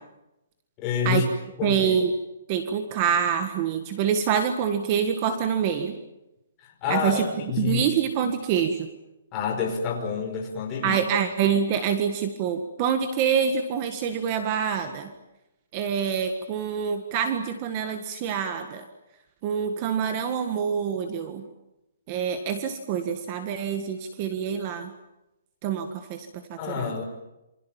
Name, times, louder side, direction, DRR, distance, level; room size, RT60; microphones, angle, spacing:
voice 1, 0.8-1.3 1.6-2.0 6.6-7.9 9.3-11.0 26.6-27.0, left 6 dB, 20° left, 1 dB, 5.2 m, -28 dB
voice 2, 1.6-2.1 2.5-6.0 6.9-8.9 10.8-15.1 15.7-18.8 19.4-21.5 22.1-24.9 25.6-26.9, right 7 dB, 25° right, 8 dB, 1.7 m, -26 dB
28.0 x 26.0 x 7.4 m, 0.95 s
hypercardioid pair, 175°, 0 cm